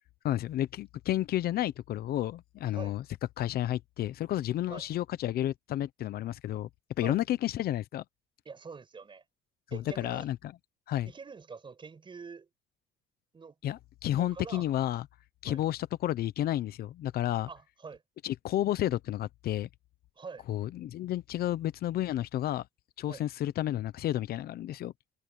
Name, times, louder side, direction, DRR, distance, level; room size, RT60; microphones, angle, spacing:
voice 1, 0.2-3.0 3.4-6.7 7.0-8.0 9.7-10.4 10.9-11.1 13.6-15.1 15.4-17.5 18.2-19.7 20.5-22.6 23.0-24.9, left 13 dB, 65° left, 0.9 m, -31 dB
voice 2, 8.4-9.2 9.7-10.3 11.1-12.5 13.3-13.5 14.2-14.6 15.4-15.6 17.5-18.0 20.2-20.4 23.1-23.2, right 5 dB, 30° right, 6.6 m, -45 dB
cardioid pair, 110°, 17 cm